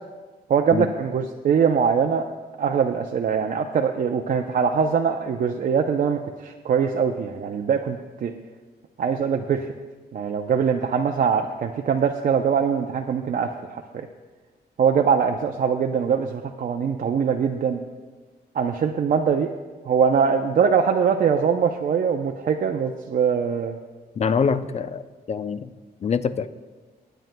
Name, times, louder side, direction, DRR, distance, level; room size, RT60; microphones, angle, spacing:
voice 1, 0.5-2.3 2.6-8.3 9.0-9.7 10.1-13.8 14.8-17.8 18.5-19.5 19.9-23.8, right 6 dB, 55° right, 3 dB, 0.5 m, -22 dB
voice 2, 24.2-25.0 25.3-25.7 26.0-26.5, left 6 dB, 40° left, 13 dB, 0.5 m, -24 dB
25.0 x 9.1 x 2.2 m, 1.4 s
cardioid pair, 120°, 17 cm